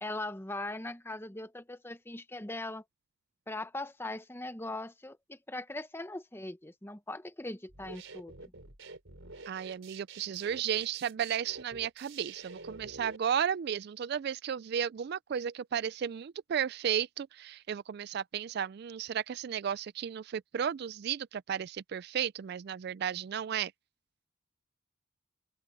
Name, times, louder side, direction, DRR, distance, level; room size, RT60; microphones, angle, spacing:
voice 1, 0.0-2.8 3.5-8.5, left 2 dB, 10° left, 0.9 m, -40 dB
sound 1, 7.7-13.2, right 3 dB, 75° right, 3.7 m, -48 dB
voice 2, 9.5-23.7, right 8 dB, 55° right, 0.3 m, -34 dB
open air
head